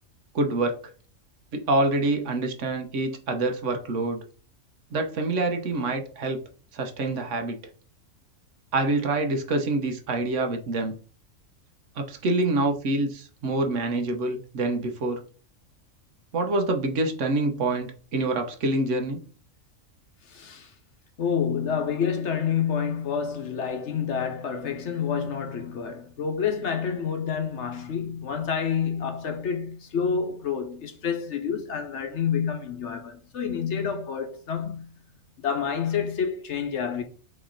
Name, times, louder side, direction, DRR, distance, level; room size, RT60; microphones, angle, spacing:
voice 1, 0.3-0.8 1.5-4.2 4.9-6.4 6.7-7.6 8.7-11.0 12.0-15.2 16.3-19.2, right 2 dB, 65° right, 1.1 m, -26 dB
voice 2, 20.3-20.7 21.2-34.9 35.4-37.0, left 7 dB, 65° left, 1.0 m, -28 dB
4.3 x 3.0 x 3.7 m
omnidirectional pair, 1.4 m